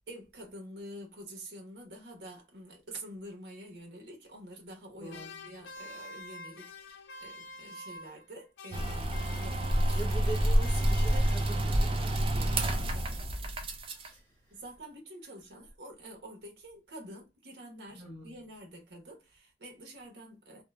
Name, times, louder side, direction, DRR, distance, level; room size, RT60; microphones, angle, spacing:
voice 1, 0.1-10.0 12.2-13.3 14.5-20.6, right 1 dB, 70° right, 0.9 m, -48 dB
voice 2, 5.0-5.6 7.2-7.3 9.9-12.3 14.0-14.6 17.9-18.4, right 2 dB, 15° left, 0.6 m, -43 dB
sound 1, 5.1-8.3 8.6-12.0, left 2 dB, 85° left, 0.4 m, -47 dB
sound 2, 8.7-14.1, right 1 dB, 30° right, 0.4 m, -28 dB
2.7 x 2.0 x 2.2 m
head